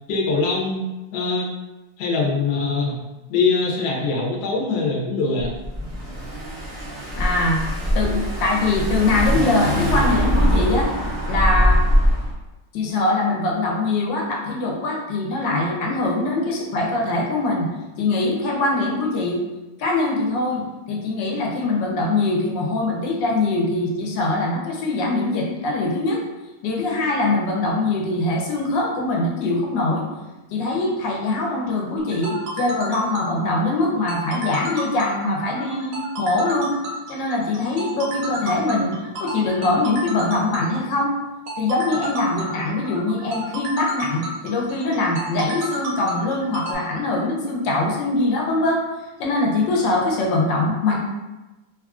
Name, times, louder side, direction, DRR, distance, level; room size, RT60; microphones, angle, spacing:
voice 1, 0.1-0.8 1.1-1.5 2.0-3.0 3.3-5.5, left 4 dB, 70° left, -2 dB, 1.1 m, -22 dB
Car / Engine, 5.4-12.3, equal, 45° right, 0.4 m, -22 dB
voice 2, 7.2-7.6 7.9-10.9 11.3-11.8 12.7-17.7 18.0-19.4 19.8-26.2 26.6-30.0 30.5-36.7 37.1-41.1 41.6-48.8 49.2-51.0, left 2 dB, 85° left, -2 dB, 1.3 m, -22 dB
sound 1, 32.0-46.7, right 1 dB, 70° right, 0.8 m, -32 dB
3.2 x 2.3 x 2.3 m, 1.1 s
omnidirectional pair, 1.9 m